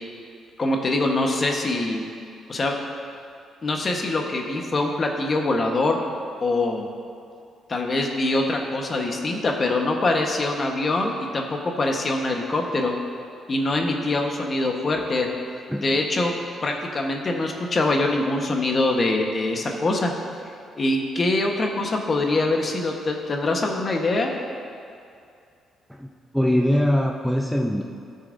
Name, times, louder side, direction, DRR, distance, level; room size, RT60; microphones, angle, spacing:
voice 1, 0.6-2.0 2.5-2.7 3.6-6.0 6.4-6.9 7.7-12.9 13.5-15.3 15.8-16.3 16.6-20.1 20.8-24.4, left 2 dB, 40° left, 2 dB, 1.3 m, -24 dB
voice 2, 25.9-27.8, equal, ahead, 0 dB, 0.6 m, -22 dB
15.5 x 6.6 x 2.7 m, 2.4 s
cardioid pair, 90°, 0 cm